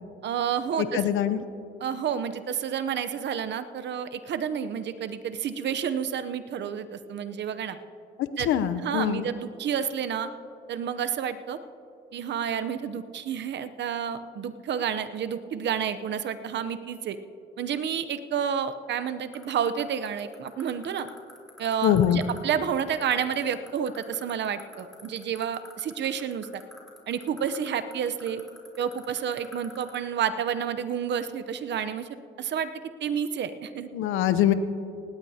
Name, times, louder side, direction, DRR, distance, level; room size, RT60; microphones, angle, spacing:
voice 1, 0.2-1.0 1.8-7.8 8.4-8.5 8.8-10.3 10.7-11.6 12.1-17.2 17.6-21.1 21.6-26.6 27.1-28.4 28.8-32.1 32.4-32.7 33.0-33.9, right 8 dB, 60° right, 11 dB, 0.7 m, -30 dB
voice 2, 0.9-1.4 8.2-9.3 21.8-22.2 33.9-34.5, left 10 dB, 90° left, 12 dB, 0.7 m, -23 dB
sound 1, 19.3-30.0, equal, ahead, 3.8 m, -46 dB
18.5 x 17.0 x 2.8 m, 2.7 s
cardioid pair, 90°, 20 cm